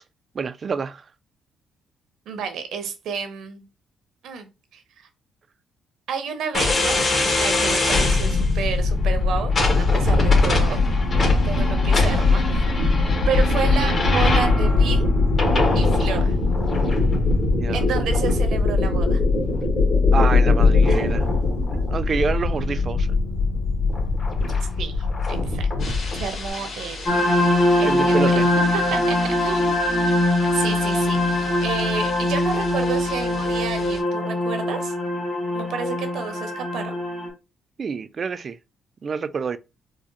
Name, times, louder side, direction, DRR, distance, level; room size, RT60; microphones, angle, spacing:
voice 1, 0.3-1.0 17.5-17.9 20.1-21.3 21.7-23.1 27.8-28.5 37.8-38.6 39.0-39.6, right 5 dB, 45° right, 0.3 m, -27 dB
voice 2, 2.3-3.6 4.2-4.5 4.7-4.8 6.1-7.0 7.4-10.9 11.4-12.6 13.3-15.1 15.7-16.4 17.7-19.2 24.8-25.7 26.1-27.2 27.8-29.8 30.4-34.9 35.5-37.0, right 6 dB, 75° right, 0.8 m, -30 dB
sound 1, 6.5-26.3, left 3 dB, 40° left, 1.5 m, -20 dB
sound 2, 25.8-34.0, left 3 dB, 65° left, 2.1 m, -37 dB
sound 3, 27.1-37.3, left 1 dB, 25° left, 1.7 m, -22 dB
4.6 x 2.1 x 2.8 m
cardioid pair, 90°, 0 cm